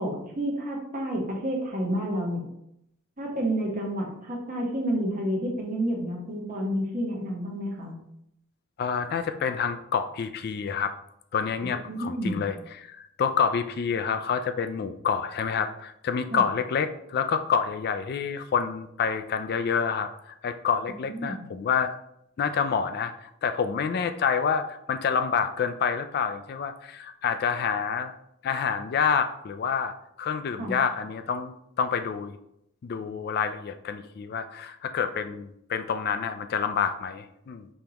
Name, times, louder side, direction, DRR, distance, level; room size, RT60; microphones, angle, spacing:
voice 1, 0.0-2.5 3.2-8.0 11.9-12.4 16.3-16.4 20.9-21.4 30.6-30.8, right 1 dB, 40° right, -1 dB, 1.2 m, -30 dB
voice 2, 8.8-10.9 11.3-22.0 22.4-28.1 28.4-32.4 32.8-37.7, left 6 dB, 50° left, 9 dB, 0.3 m, -28 dB
5.3 x 3.4 x 2.9 m, 0.76 s
head